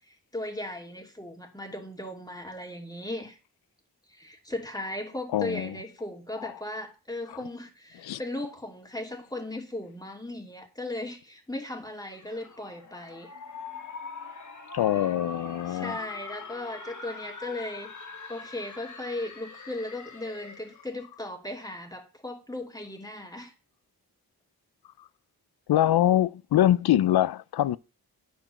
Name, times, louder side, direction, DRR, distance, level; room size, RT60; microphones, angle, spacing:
voice 1, 0.1-3.4 4.1-13.3 15.7-17.9 18.3-23.5, left 1 dB, 10° left, 2.6 m, -37 dB
voice 2, 5.3-5.7 6.4-6.5 8.0-8.2 14.7-16.0 25.7-27.8, left 12 dB, 85° left, 0.5 m, -24 dB
sound 1, 12.0-20.9, left 4 dB, 50° left, 1.7 m, -43 dB
10.0 x 4.7 x 6.9 m
cardioid pair, 75°, 37 cm